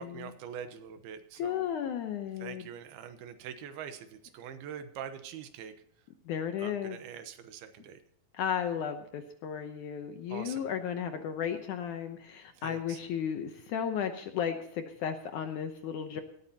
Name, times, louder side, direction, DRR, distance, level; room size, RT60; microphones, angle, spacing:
voice 1, 0.0-1.7 2.4-5.7 6.6-8.0 10.3-10.7 12.6-13.0, right 8 dB, 85° right, 10 dB, 3.0 m, -44 dB
voice 2, 1.4-2.6 6.3-7.0 8.3-16.2, left 8 dB, 70° left, 7 dB, 1.9 m, -34 dB
18.0 x 13.0 x 2.8 m, 0.75 s
omnidirectional pair, 4.4 m